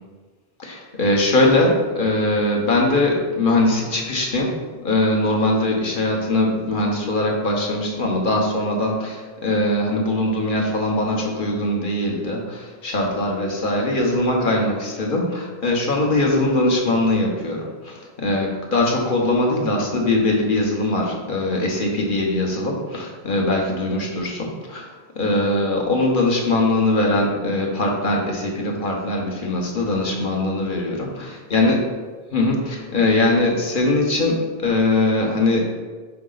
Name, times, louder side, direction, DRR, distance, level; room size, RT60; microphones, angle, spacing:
voice 1, 0.6-4.5 4.8-31.1 31.5-31.8 32.3-35.7, left 2 dB, 55° left, 0 dB, 1.1 m, -21 dB
5.8 x 4.1 x 3.9 m, 1.4 s
omnidirectional pair, 1.1 m